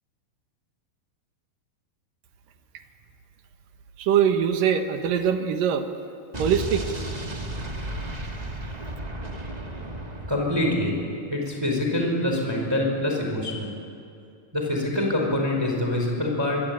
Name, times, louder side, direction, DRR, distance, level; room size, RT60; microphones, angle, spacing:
voice 1, 4.0-5.9 6.4-6.8, right 8 dB, 70° right, 6 dB, 3.1 m, -22 dB
Explosion, 6.3-11.1, right 1 dB, 90° right, 0.3 m, -34 dB
voice 2, 10.3-10.9 11.3-13.7 14.5-16.6, left 1 dB, 5° right, 0 dB, 4.8 m, -25 dB
25.0 x 24.0 x 8.9 m, 2.5 s
omnidirectional pair, 4.3 m